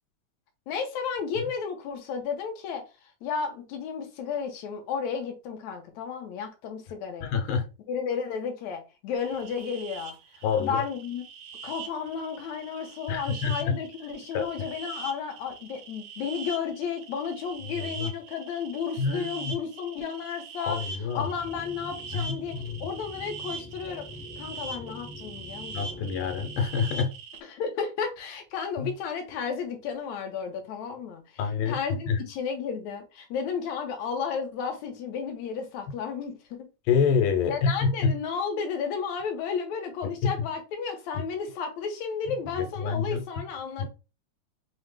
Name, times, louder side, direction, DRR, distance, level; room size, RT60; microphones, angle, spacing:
voice 1, 0.7-2.8 3.2-7.3 7.9-10.2 10.6-11.2 11.6-20.8 21.2-24.1 24.4-26.0 27.4-31.2 31.7-36.7 37.5-43.9, left 6 dB, 75° left, 1.8 m, -33 dB
voice 2, 7.2-7.7 10.4-10.8 13.1-13.8 14.3-14.5 17.8-18.1 19.0-19.5 20.7-21.3 22.1-22.3 25.7-27.1 28.8-28.9 31.4-31.8 32.1-32.2 36.9-38.1 40.0-40.3 41.2-41.3 42.5-43.2 43.8-43.9, left 6 dB, 90° left, 2.2 m, -27 dB
sound 1, 9.2-27.4, right 4 dB, 85° right, 2.1 m, -42 dB
sound 2, 21.1-26.7, left 2 dB, 5° left, 0.6 m, -44 dB
5.6 x 2.1 x 3.2 m
omnidirectional pair, 3.7 m